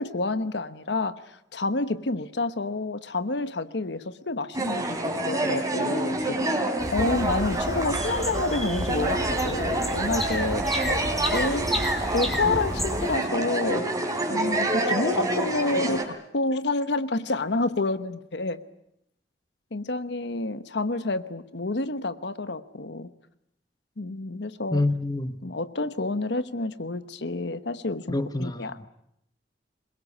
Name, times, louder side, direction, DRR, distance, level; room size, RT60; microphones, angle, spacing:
voice 1, 0.0-6.6 6.9-11.0 11.3-13.9 14.3-18.6 19.7-23.1 24.0-24.8 25.4-28.9, left 2 dB, 65° left, 1.1 m, -29 dB
sound 1, 4.5-16.0, right 1 dB, 20° right, 3.6 m, -27 dB
sound 2, 6.8-13.2, equal, ahead, 2.3 m, -31 dB
voice 2, 24.7-25.4 28.1-28.9, left 2 dB, 20° left, 1.0 m, -27 dB
23.5 x 21.5 x 9.7 m
head